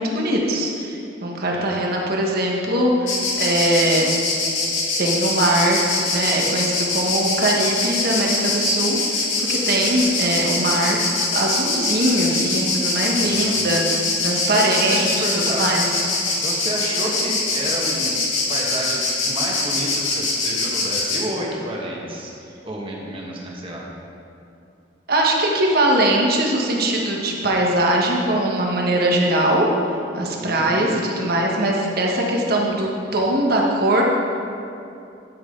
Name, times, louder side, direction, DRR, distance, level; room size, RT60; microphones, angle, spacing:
voice 1, 0.0-4.1 5.0-5.8 6.1-11.0 11.3-15.9 25.1-29.7 30.1-34.0, right 1 dB, 55° right, -1 dB, 1.4 m, -21 dB
Insect, 3.1-21.2, left 3 dB, 90° left, 2.2 m, -23 dB
voice 2, 13.2-13.6 14.5-15.7 16.4-18.2 18.5-22.3 22.6-23.8 30.4-31.0, right 1 dB, 30° right, -3 dB, 1.5 m, -30 dB
12.0 x 7.5 x 3.8 m, 2.7 s
head